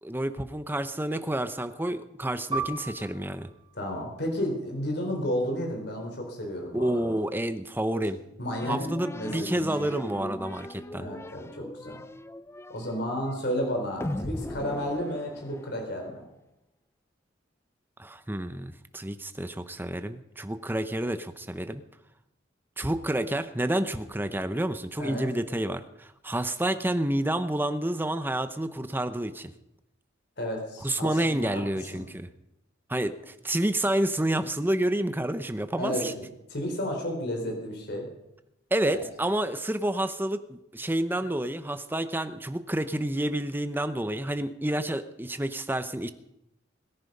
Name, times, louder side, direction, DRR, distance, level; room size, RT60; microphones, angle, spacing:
voice 1, 0.0-3.5 6.7-8.2 8.7-11.1 18.0-21.8 22.8-29.5 30.8-32.3 32.9-36.1 38.7-46.1, right 1 dB, 10° right, 10 dB, 0.8 m, -29 dB
Piano, 2.5-7.6 7.9-8.1 8.8-9.2, right 4 dB, 25° right, 2.6 m, -39 dB
voice 2, 3.8-7.2 8.4-9.9 11.0-12.0 12.7-16.3 25.0-25.3 30.4-31.5 31.9-32.0 35.8-36.2 36.5-38.1, equal, 60° left, 2 dB, 3.8 m, -32 dB
sound 1, 8.5-16.0, left 1 dB, 15° left, 0.5 m, -38 dB
22.0 x 10.5 x 5.4 m, 0.86 s
head